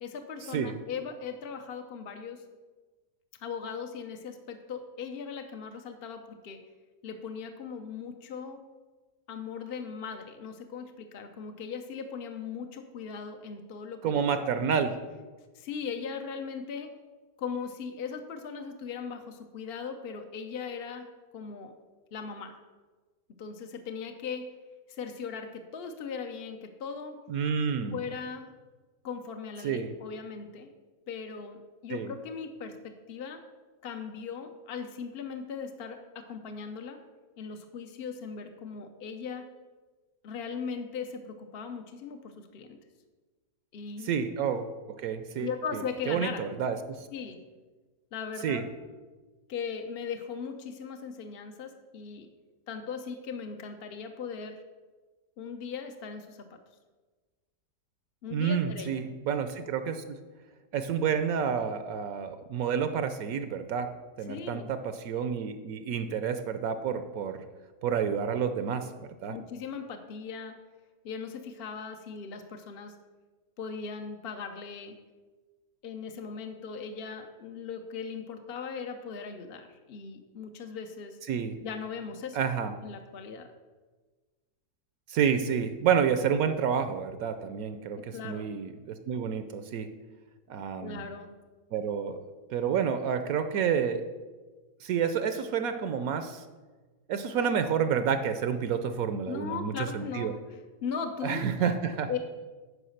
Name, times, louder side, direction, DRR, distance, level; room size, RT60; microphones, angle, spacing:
voice 1, 0.0-2.4 3.4-6.6 7.0-8.6 9.3-14.8 15.5-16.9 17.4-21.7 22.1-22.6 23.4-24.5 24.9-27.2 27.9-28.5 29.0-30.7 31.1-33.4 33.8-37.0 37.4-39.5 40.2-42.8 43.7-44.1 45.4-46.4 47.1-47.4 48.1-48.7 49.5-52.3 52.7-54.6 55.4-56.6 58.2-59.0 64.3-64.7 69.3-70.6 71.0-72.9 73.6-75.0 75.8-81.2 81.6-82.5 82.8-83.5 88.0-88.5 90.8-91.3 99.3-101.4 102.1-102.2, left 6 dB, 55° left, 5 dB, 0.6 m, -38 dB
voice 2, 14.0-15.0 27.3-28.0 29.6-29.9 31.9-32.1 44.0-45.5 46.1-47.1 48.4-48.6 58.3-60.2 60.7-63.9 64.2-67.4 67.8-68.9 69.2-69.4 81.3-81.6 82.3-82.7 85.1-89.9 90.5-91.0 91.7-92.2 92.5-94.0 94.8-96.4 97.1-100.3 101.2-102.1, right 7 dB, 70° right, 10 dB, 1.0 m, -29 dB
9.8 x 4.8 x 6.4 m, 1.3 s
omnidirectional pair, 1.7 m